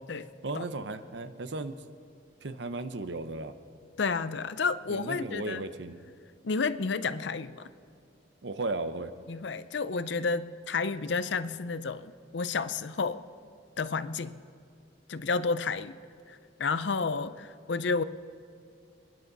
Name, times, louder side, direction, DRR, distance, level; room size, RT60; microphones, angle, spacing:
voice 1, 0.4-1.7 2.4-3.5 4.9-6.0 8.4-9.1, right 2 dB, 70° right, 10 dB, 0.8 m, -35 dB
voice 2, 4.0-5.6 6.4-7.7 9.3-13.2 13.8-14.3 15.1-16.0 16.3-18.0, left 4 dB, 75° left, 13 dB, 0.6 m, -31 dB
27.5 x 10.5 x 4.0 m, 2.3 s
head